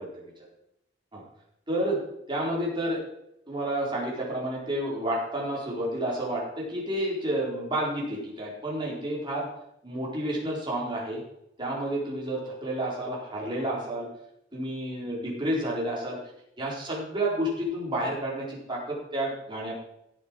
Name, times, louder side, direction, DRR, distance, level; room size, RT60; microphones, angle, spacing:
voice 1, 1.7-2.0 2.3-3.0 3.5-9.5 9.8-11.2 11.6-14.1 14.5-16.2 16.6-19.7, right 1 dB, 25° right, -4 dB, 4.5 m, -30 dB
16.0 x 7.3 x 4.9 m, 0.79 s
head